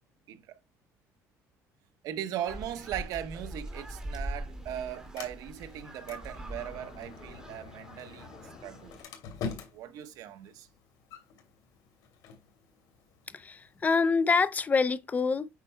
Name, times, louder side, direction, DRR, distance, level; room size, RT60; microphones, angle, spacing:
voice 1, 0.3-0.6 2.0-8.3 8.6-8.9 9.7-10.7, right 11 dB, 70° right, 1.1 m, -38 dB
sound 1, 2.4-9.0, right 1 dB, 10° right, 2.1 m, -42 dB
Sliding door, 3.8-13.8, left 5 dB, 75° left, 2.6 m, -46 dB
voice 2, 13.3-15.5, left 4 dB, 25° left, 0.5 m, -26 dB
8.3 x 5.5 x 2.2 m
cardioid pair, 125°, 6 cm